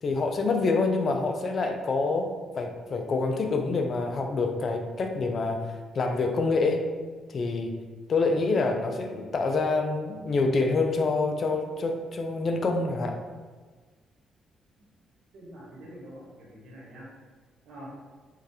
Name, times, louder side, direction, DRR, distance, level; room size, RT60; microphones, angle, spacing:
voice 1, 0.0-2.3 2.6-5.6 5.9-6.8 7.3-7.7 8.1-13.2, left 3 dB, 50° left, 4 dB, 0.5 m, -26 dB
voice 2, 15.3-17.1 17.6-17.9, equal, 80° right, -5 dB, 1.4 m, -45 dB
3.7 x 3.2 x 2.9 m, 1.4 s
cardioid pair, 90°, 0 cm